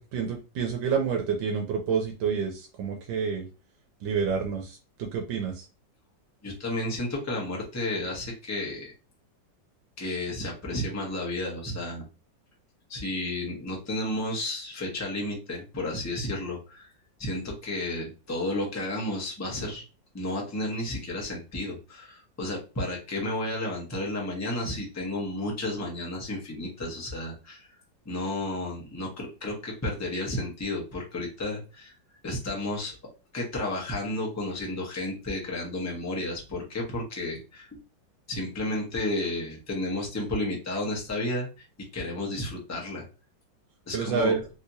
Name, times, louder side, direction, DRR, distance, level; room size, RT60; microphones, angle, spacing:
voice 1, 0.0-3.5 4.0-5.6 43.9-44.5, right 6 dB, 85° right, 2 dB, 1.3 m, -28 dB
voice 2, 6.4-8.9 10.0-12.1 12.9-16.9 17.2-19.8 20.1-27.7 28.0-31.9 32.2-33.0 33.3-37.7 38.3-41.6 41.9-43.0 43.9-44.4, left 1 dB, 20° left, -1 dB, 0.4 m, -32 dB
3.3 x 2.8 x 2.6 m, 0.32 s
omnidirectional pair, 2.0 m